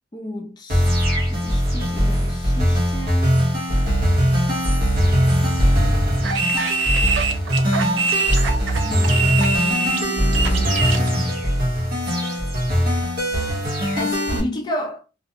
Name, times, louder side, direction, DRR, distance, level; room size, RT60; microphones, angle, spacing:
voice 1, 0.1-1.0 1.3-3.3 8.8-11.4 14.0-15.0, left 1 dB, 20° left, 0.5 m, -32 dB
sound 1, 0.7-14.4, equal, 50° right, 0.9 m, -20 dB
sound 2, 6.2-11.1, right 4 dB, 70° right, 0.5 m, -23 dB
2.4 x 2.1 x 2.7 m
head